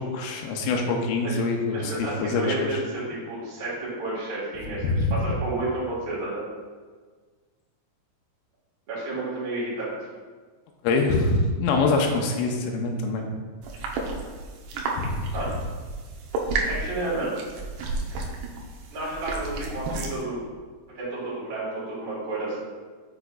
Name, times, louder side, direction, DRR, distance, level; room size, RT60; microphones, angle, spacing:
voice 1, 0.0-2.8 4.8-5.1 10.8-13.2 15.0-15.3, left 3 dB, 85° left, 1 dB, 3.2 m, -25 dB
voice 2, 1.7-6.4 8.9-9.9 15.3-15.5 16.7-17.3 18.9-20.4 20.9-22.6, right 2 dB, 45° right, -8 dB, 1.7 m, -31 dB
sound 1, 13.6-20.2, right 3 dB, 90° right, 2.3 m, -32 dB
7.9 x 5.7 x 2.5 m, 1.5 s
omnidirectional pair, 5.7 m